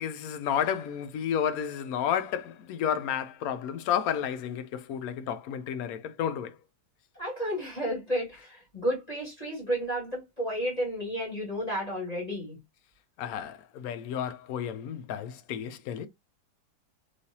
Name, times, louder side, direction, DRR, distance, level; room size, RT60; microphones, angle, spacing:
voice 1, 0.0-6.6 13.2-16.1, left 9 dB, 70° left, 0.9 m, -31 dB
voice 2, 7.2-12.6, equal, 25° left, 1.8 m, -32 dB
3.2 x 3.1 x 2.7 m
omnidirectional pair, 1.8 m